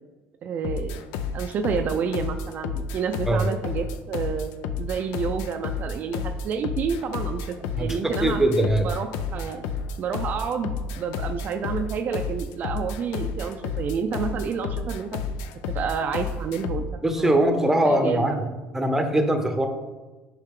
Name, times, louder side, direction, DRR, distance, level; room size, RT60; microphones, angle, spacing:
voice 1, 0.4-1.0 1.3-4.5 4.8-9.6 10.0-15.2 15.7-16.9 17.2-17.4 17.8-18.4, right 6 dB, 45° right, 6 dB, 0.4 m, -29 dB
sound 1, 0.6-16.9, left 5 dB, 85° left, 0.5 m, -31 dB
voice 2, 7.8-8.9 17.0-18.5 18.7-19.7, right 1 dB, 10° right, 6 dB, 0.7 m, -22 dB
6.5 x 4.6 x 3.7 m, 1.2 s
cardioid pair, 125°, 4 cm